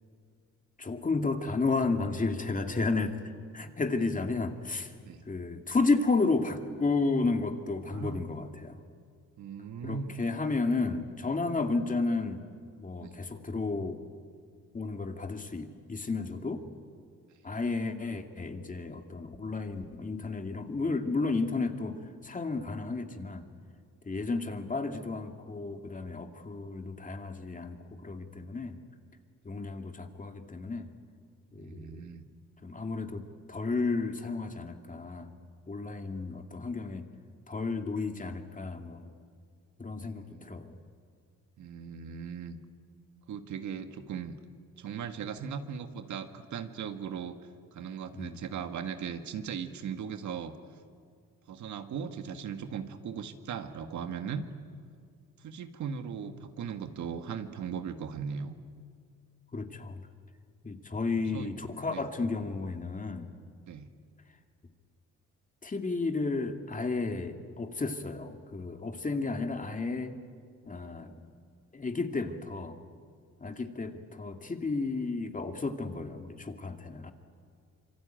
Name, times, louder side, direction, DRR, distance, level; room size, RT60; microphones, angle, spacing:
voice 1, 0.8-3.2 3.5-4.9 5.3-8.8 9.8-12.4 12.8-14.0 14.7-16.6 17.4-23.4 24.0-28.8 29.4-30.9 31.5-32.0 32.6-35.3 35.7-37.1 37.5-39.1 39.8-40.8 48.1-48.4 59.5-60.0 60.6-63.3 65.6-70.1 70.6-71.1 71.7-72.8 73.4-77.1, left 3 dB, 25° left, 5 dB, 2.4 m, -32 dB
voice 2, 7.9-8.2 9.4-10.1 13.0-13.3 31.6-32.3 40.0-40.6 41.6-42.6 43.3-44.4 44.8-47.4 47.7-50.6 51.5-54.4 55.4-58.6 61.2-61.5 61.9-62.1 63.6-63.9, right 7 dB, 70° right, 8 dB, 1.8 m, -38 dB
26.5 x 24.0 x 9.2 m, 2.1 s
cardioid pair, 90°, 30 cm